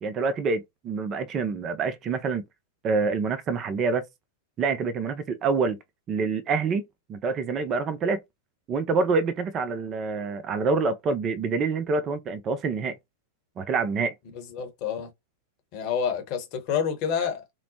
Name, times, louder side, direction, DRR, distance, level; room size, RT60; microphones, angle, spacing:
voice 1, 0.0-2.4 2.8-4.0 4.6-5.8 6.1-6.8 7.1-8.2 8.7-12.9 13.6-14.1, right 4 dB, 30° right, 0.5 m, -26 dB
voice 2, 14.3-15.1 15.7-17.5, left 7 dB, 45° left, 0.9 m, -28 dB
2.9 x 2.0 x 2.7 m
figure-of-eight pair, 95°, 0 cm